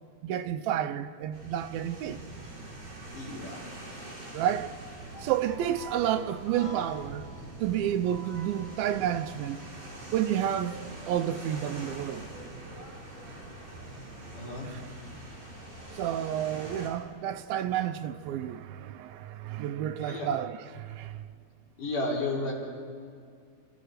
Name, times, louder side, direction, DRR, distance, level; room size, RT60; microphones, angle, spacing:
voice 1, 0.2-2.2 4.3-4.7 5.2-7.3 7.6-9.6 10.1-10.8 11.1-12.2 14.7-14.8 15.9-21.2, right 10 dB, 80° right, 2.4 m, -30 dB
sound 1, 1.3-16.9, right 2 dB, 60° right, 5.8 m, -45 dB
voice 2, 3.1-3.6 14.3-14.7 20.0-20.3 21.8-22.5, left 2 dB, 60° left, 4.8 m, -32 dB
sound 2, 5.1-14.6, right 1 dB, 30° right, 5.2 m, -48 dB
sound 3, 10.8-16.9, equal, 35° left, 5.8 m, -51 dB
29.0 x 14.0 x 6.5 m
omnidirectional pair, 4.3 m